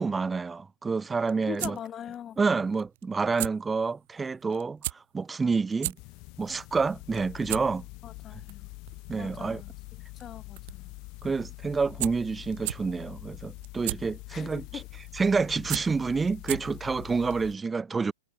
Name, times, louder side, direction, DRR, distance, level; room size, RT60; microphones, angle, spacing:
voice 1, 0.0-1.8 2.4-6.0 6.4-7.9 9.1-9.6 11.2-14.6 15.2-18.1, right 4 dB, 10° right, 0.6 m, -28 dB
sound 1, 1.0-16.9, right 19 dB, 50° right, 1.2 m, -39 dB
voice 2, 1.5-2.4 8.0-8.7 9.2-9.7 10.1-11.0 14.3-14.9, left 10 dB, 20° left, 3.0 m, -41 dB
sound 2, 6.0-17.6, left 25 dB, 40° left, 1.2 m, -45 dB
hypercardioid pair, 140°, 0 cm